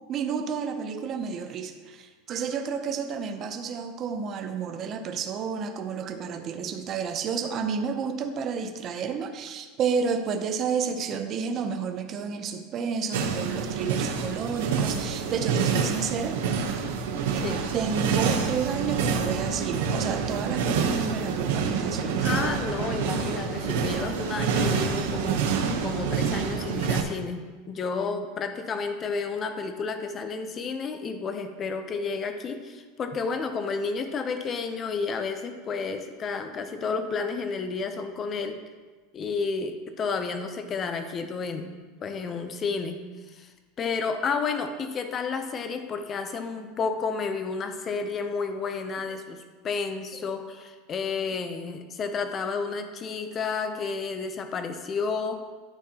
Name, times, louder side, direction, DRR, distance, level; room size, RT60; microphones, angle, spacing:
voice 1, 0.1-16.4 17.7-22.3, right 6 dB, 30° right, 6 dB, 0.5 m, -31 dB
sound 1, 13.1-27.0, right 6 dB, 85° right, 0.8 m, -27 dB
voice 2, 17.4-17.7 22.2-38.6 39.1-41.7 42.0-43.5 43.8-55.4, left 4 dB, 25° left, 8 dB, 0.5 m, -31 dB
12.0 x 4.2 x 2.8 m, 1.4 s
supercardioid pair, 165°, 0 cm